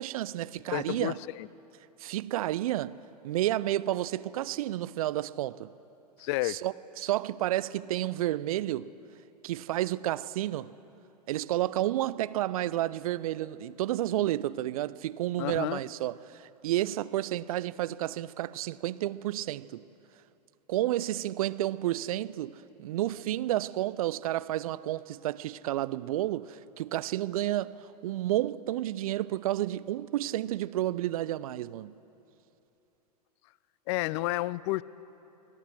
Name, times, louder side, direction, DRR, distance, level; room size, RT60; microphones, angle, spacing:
voice 1, 0.0-1.2 2.0-3.0 3.2-5.7 6.4-8.9 9.4-10.7 11.3-19.8 20.7-27.8 28.0-32.0, right 14 dB, 60° right, 0.6 m, -31 dB
voice 2, 0.7-1.5 6.2-6.6 15.4-15.8 33.9-34.8, left 19 dB, 45° left, 0.4 m, -30 dB
29.5 x 18.5 x 6.2 m
figure-of-eight pair, 95°, 21 cm